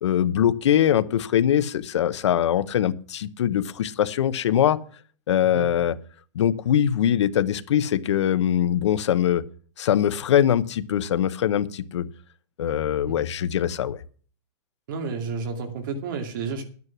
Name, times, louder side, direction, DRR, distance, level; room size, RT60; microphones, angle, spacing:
voice 1, 0.0-4.8 5.3-6.0 6.3-9.4 9.8-12.1 12.6-14.0, left 10 dB, 75° left, 15 dB, 0.9 m, -22 dB
voice 2, 14.9-16.6, right 4 dB, 45° right, 5 dB, 2.5 m, -31 dB
11.0 x 9.6 x 6.0 m, 0.43 s
supercardioid pair, 175°, 15 cm